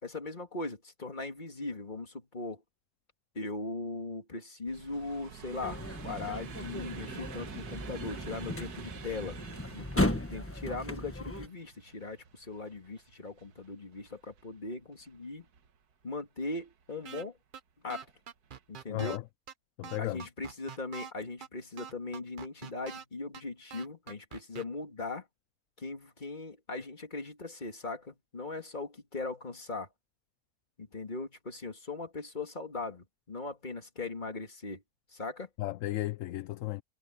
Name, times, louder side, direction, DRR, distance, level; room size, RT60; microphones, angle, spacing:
voice 1, 0.0-2.6 3.3-9.4 9.7-15.5 16.0-17.3 17.8-18.1 18.7-19.2 20.0-25.2 25.8-29.9 30.8-34.8 35.1-35.5, left 3 dB, 30° left, 2.5 m, -39 dB
sound 1, 4.7-15.8 16.4-17.1 17.9-18.2 18.4-18.6, right 7 dB, 85° right, 1.8 m, -48 dB
sound 2, 5.6-11.5, left 1 dB, 10° left, 1.2 m, -36 dB
sound 3, 17.0-17.2 17.5-17.6 17.9-19.2 19.5-19.6 19.8-21.1 21.4-21.5 21.8-23.0 23.3-23.4 23.7-24.6, right 7 dB, 45° right, 0.7 m, -44 dB
voice 2, 18.9-19.2 19.8-20.2 35.6-36.8, left 16 dB, 70° left, 0.9 m, -34 dB
omnidirectional pair, 1.6 m